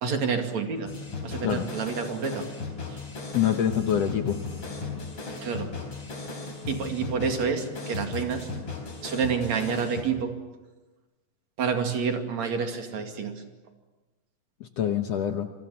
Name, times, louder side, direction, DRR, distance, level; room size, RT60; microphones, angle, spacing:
voice 1, 0.0-0.9 1.2-2.5 2.9-3.0 5.4-5.7 6.7-8.5 9.0-10.3 11.6-13.3, right 6 dB, 55° right, 4 dB, 3.5 m, -28 dB
sound 1, 0.9-10.0, left 4 dB, 40° left, 5.4 m, -36 dB
voice 2, 3.3-4.4 14.6-15.5, left 9 dB, 65° left, 6 dB, 1.8 m, -25 dB
28.5 x 23.5 x 7.2 m, 1.2 s
omnidirectional pair, 3.8 m